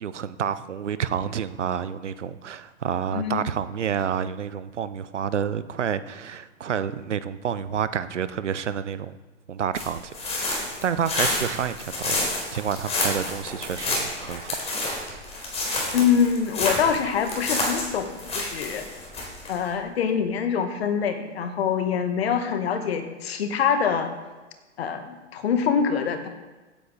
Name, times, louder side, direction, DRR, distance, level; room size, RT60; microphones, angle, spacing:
voice 1, 0.0-9.1 9.5-10.1 10.4-12.2 12.5-14.6 14.9-15.2, right 8 dB, 70° right, 14 dB, 0.8 m, -29 dB
voice 2, 3.1-3.4 15.9-18.9 19.5-24.1 24.8-26.3, left 7 dB, 55° left, 7 dB, 1.7 m, -24 dB
sound 1, 9.7-19.6, left 2 dB, 15° left, 3.8 m, -29 dB
16.5 x 8.8 x 3.9 m, 1.2 s
figure-of-eight pair, 105°, 37 cm